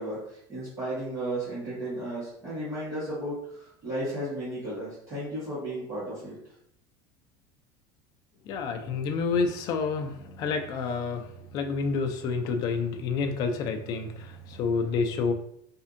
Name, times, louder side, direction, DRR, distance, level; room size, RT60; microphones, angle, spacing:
voice 1, 0.0-6.3, right 1 dB, 25° right, -10 dB, 1.2 m, -34 dB
voice 2, 8.5-15.3, left 5 dB, 35° left, 5 dB, 0.3 m, -29 dB
4.1 x 2.6 x 2.5 m, 0.72 s
cardioid pair, 175°, 11 cm